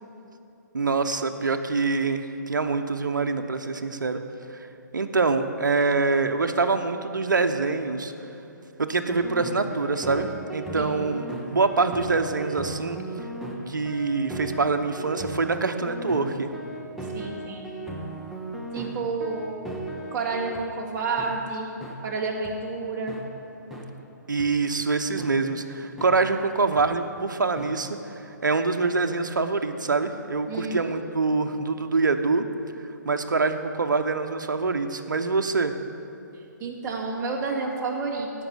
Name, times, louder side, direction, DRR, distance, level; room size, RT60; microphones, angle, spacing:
voice 1, 0.7-4.2 4.5-4.7 4.9-8.1 8.8-13.0 13.7-16.5 24.3-28.1 28.4-32.5 33.0-35.7, right 4 dB, 85° right, 7 dB, 0.8 m, -25 dB
sound 1, 9.1-20.6 21.2-21.3 21.8-21.9 22.4-22.5 23.1-23.2 23.7-23.8 24.4-24.5 25.2-25.3 26.0-26.1 26.8-26.9 27.6-27.7, right 1 dB, ahead, 1.1 m, -36 dB
voice 2, 17.1-17.7 18.7-19.4 20.1-21.7 22.0-23.1 30.5-30.8 36.6-38.4, right 4 dB, 25° right, -3 dB, 2.0 m, -30 dB
16.5 x 5.5 x 6.8 m, 2.8 s
hypercardioid pair, 140°, 10 cm